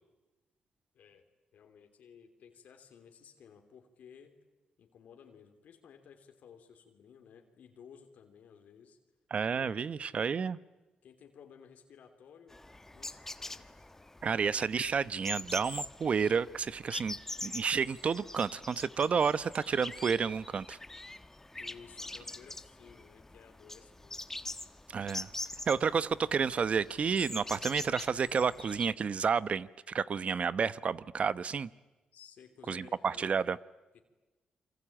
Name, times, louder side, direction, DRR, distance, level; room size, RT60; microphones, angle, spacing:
voice 1, 0.9-1.3 1.5-4.4 4.8-9.0 9.5-9.9 11.0-12.7 12.9-13.7 21.6-24.3 32.1-33.4 33.9-34.0, left 7 dB, 75° left, 5 dB, 3.2 m, -56 dB
voice 2, 9.3-10.6 14.2-17.2 17.4-20.8 24.9-25.3 25.7-29.7 29.9-31.7 32.7-33.6, right 6 dB, 50° right, 16 dB, 0.9 m, -30 dB
sound 1, 12.5-28.9, left 2 dB, 15° left, 1.3 m, -44 dB
27.5 x 24.5 x 8.9 m, 1.2 s
cardioid pair, 70°, 3 cm